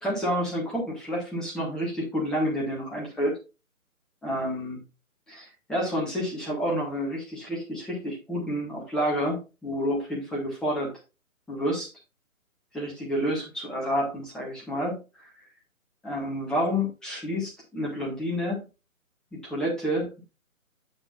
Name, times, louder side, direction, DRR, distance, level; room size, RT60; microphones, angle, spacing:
voice 1, 0.0-3.3 4.2-4.8 5.3-10.9 11.5-11.9 12.7-15.3 16.0-18.6 19.3-20.2, equal, ahead, -4 dB, 1.1 m, -29 dB
8.9 x 7.5 x 2.5 m, 0.29 s
figure-of-eight pair, 145°, 43 cm